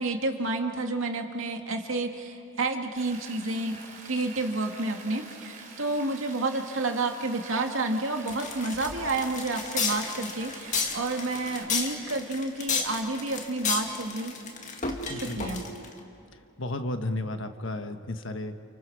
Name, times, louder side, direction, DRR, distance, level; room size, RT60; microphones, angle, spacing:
voice 1, 0.0-3.8 4.0-14.3 15.1-15.6, right 2 dB, 85° right, 3 dB, 2.2 m, -30 dB
Rain, 3.0-11.6, right 4 dB, 40° right, 3.7 m, -46 dB
sound 1, 8.3-15.9, left 5 dB, 40° left, 2.2 m, -32 dB
voice 2, 15.1-15.6 16.6-18.6, left 2 dB, 70° left, 7 dB, 1.4 m, -33 dB
30.0 x 29.5 x 4.9 m, 2.8 s
head